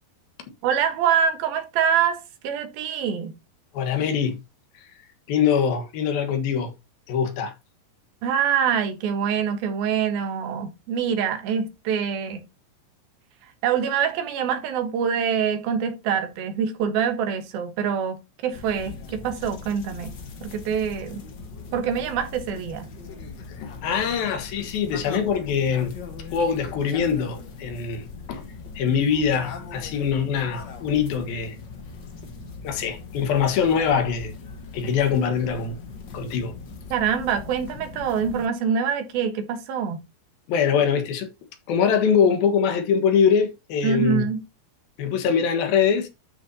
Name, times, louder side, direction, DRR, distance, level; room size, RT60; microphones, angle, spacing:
voice 1, 0.6-3.3 8.2-12.4 13.6-21.2 21.7-22.9 36.9-40.0 43.8-44.4, right 7 dB, 85° right, 3.3 m, -25 dB
voice 2, 3.7-4.4 4.7-4.9 5.3-6.7 7.1-7.5 23.6-25.9 26.3-28.4 28.8-31.6 32.6-34.3 34.7-35.8 36.1-36.5 40.5-41.3 41.7-44.3 45.0-46.1, left 7 dB, 80° left, 3.4 m, -23 dB
sound 1, 18.5-38.5, left 4 dB, 50° left, 1.3 m, -40 dB
12.0 x 6.6 x 2.8 m
omnidirectional pair, 4.1 m